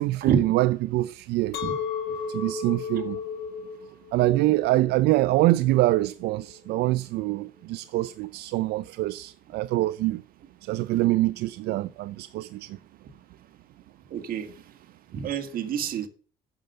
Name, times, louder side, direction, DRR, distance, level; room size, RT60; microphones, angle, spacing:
voice 1, 0.0-1.6 2.3-3.2 4.1-10.2 10.6-12.8, right 17 dB, 75° right, 0.4 m, -25 dB
Chink clink, 1.5-6.7, left 6 dB, 75° left, 2.0 m, -35 dB
voice 2, 14.1-14.5 15.1-16.1, right 7 dB, 60° right, 1.8 m, -28 dB
8.9 x 6.8 x 7.8 m
cardioid pair, 110°, 17 cm